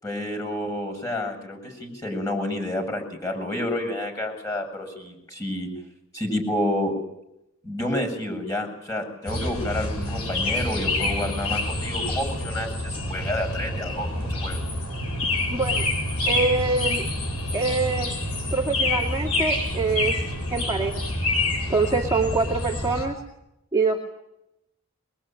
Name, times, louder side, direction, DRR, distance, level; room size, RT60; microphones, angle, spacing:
voice 1, 0.0-5.7 6.1-6.9 7.6-14.6, left 1 dB, 15° left, 4 dB, 7.0 m, -29 dB
sound 1, 9.3-23.1, left 2 dB, 85° left, 7.9 m, -27 dB
voice 2, 15.5-15.9 16.3-17.1 17.5-18.1 18.5-20.2 20.5-21.0 21.7-23.2 23.7-24.0, right 3 dB, 15° right, -2 dB, 2.3 m, -25 dB
23.5 x 22.0 x 9.1 m, 0.86 s
head